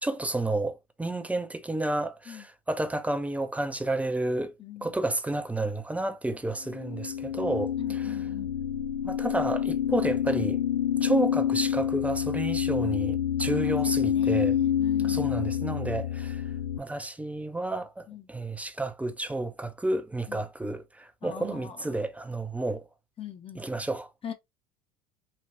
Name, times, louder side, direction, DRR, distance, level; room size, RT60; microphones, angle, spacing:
voice 1, 0.0-4.5 4.8-8.2 9.0-10.6 11.0-14.6 15.0-16.4 16.8-22.8 23.6-24.1, right 2 dB, 10° right, 0.5 m, -31 dB
voice 2, 4.6-5.0 7.8-8.6 14.0-15.4 18.1-18.3 20.3-20.5 21.2-22.0 23.2-23.7 24.2-24.3, left 9 dB, 30° left, 0.8 m, -42 dB
sound 1, 6.7-16.8, left 9 dB, 75° left, 0.5 m, -28 dB
3.3 x 2.3 x 2.8 m
hypercardioid pair, 70°, 18 cm